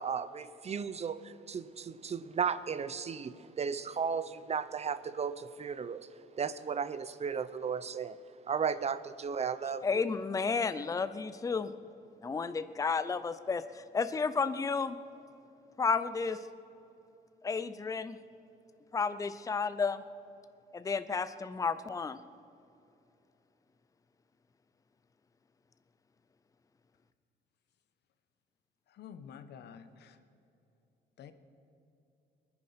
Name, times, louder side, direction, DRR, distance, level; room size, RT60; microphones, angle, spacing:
voice 1, 0.0-6.1 6.4-8.2 8.5-10.0, right 6 dB, 35° right, 15 dB, 0.7 m, -35 dB
voice 2, 9.8-11.7 12.2-15.0 15.8-16.4 17.4-18.2 18.9-20.0 20.7-22.2, left 5 dB, 20° left, 12 dB, 0.6 m, -32 dB
voice 3, 28.9-30.2 31.2-31.3, left 7 dB, 70° left, 10 dB, 1.1 m, -49 dB
21.5 x 10.0 x 5.8 m, 2.7 s
cardioid pair, 90°, 18 cm